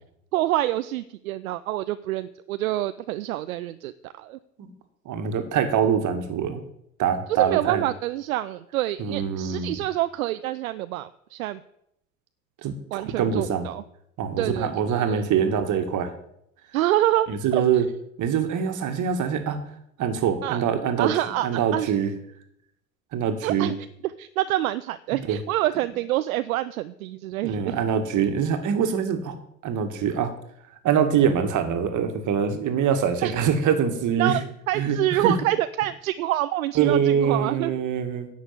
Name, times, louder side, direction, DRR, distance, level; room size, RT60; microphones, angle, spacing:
voice 1, 0.3-4.4 7.3-11.6 12.9-13.8 14.4-15.3 16.7-17.6 20.4-20.6 21.0-21.9 23.4-23.8 24.2-27.8 33.2-33.3 34.2-34.4 34.7-37.7, right 15 dB, 70° right, 14 dB, 0.6 m, -27 dB
voice 2, 5.1-6.6 7.0-7.8 9.0-9.8 12.6-13.7 14.2-16.1 17.3-17.9 18.2-19.6 20.0-21.1 21.4-22.1 23.1-23.7 25.3-25.4 27.4-29.4 29.6-30.3 30.8-34.4 34.7-35.3 36.8-38.3, right 7 dB, 40° right, 7 dB, 2.1 m, -24 dB
10.5 x 7.2 x 8.3 m, 0.76 s
figure-of-eight pair, 70°, 44 cm